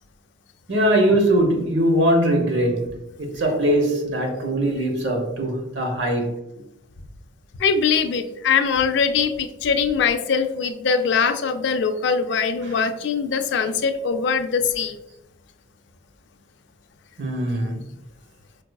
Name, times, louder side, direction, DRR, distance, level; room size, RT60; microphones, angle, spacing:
voice 1, 0.7-6.4 12.6-13.0 17.2-17.9, right 1 dB, 70° right, 0.8 m, -21 dB
voice 2, 7.6-15.0, left 6 dB, 70° left, 0.3 m, -22 dB
4.6 x 2.4 x 2.2 m
head